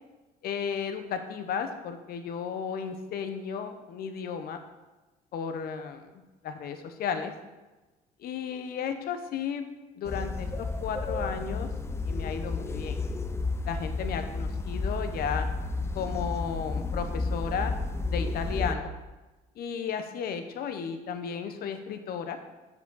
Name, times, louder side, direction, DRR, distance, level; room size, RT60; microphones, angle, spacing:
voice 1, 0.4-4.6 5.3-6.0 6.4-7.3 8.2-9.6 10.0-11.7 12.0-13.0 13.7-15.5 15.9-17.7 18.1-18.9 19.6-22.4, left 7 dB, 65° left, 8 dB, 0.9 m, -34 dB
sound 1, 10.1-18.8, left 3 dB, 15° left, 0.5 m, -32 dB
7.1 x 6.9 x 4.1 m, 1.2 s
cardioid pair, 110°, 17 cm